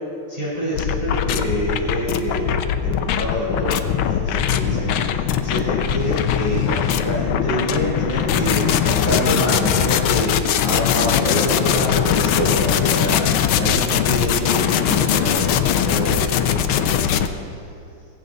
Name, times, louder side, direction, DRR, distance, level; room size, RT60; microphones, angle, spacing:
voice 1, 0.3-2.5 2.8-5.0 5.4-13.2 13.6-17.2, equal, 25° right, -8 dB, 4.8 m, -26 dB
sound 1, 0.7-17.3, left 9 dB, 80° left, 1.5 m, -20 dB
16.5 x 16.0 x 4.0 m, 2.5 s
omnidirectional pair, 2.4 m